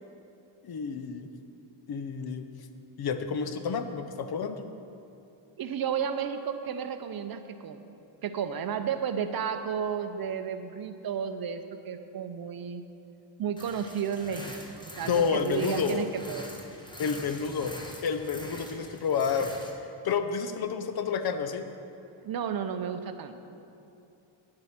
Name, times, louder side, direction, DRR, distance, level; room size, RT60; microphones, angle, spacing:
voice 1, 0.6-1.3 1.9-2.5 3.0-4.6 15.1-16.1 17.0-17.8 18.0-19.5 20.0-21.7, left 6 dB, 50° left, 9 dB, 0.7 m, -29 dB
voice 2, 5.6-12.8 13.4-16.5 22.2-23.5, right 7 dB, 50° right, 9 dB, 0.6 m, -33 dB
sound 1, 13.6-19.7, equal, 10° left, 1.0 m, -44 dB
9.8 x 7.7 x 5.8 m, 2.7 s
cardioid pair, 125°, 48 cm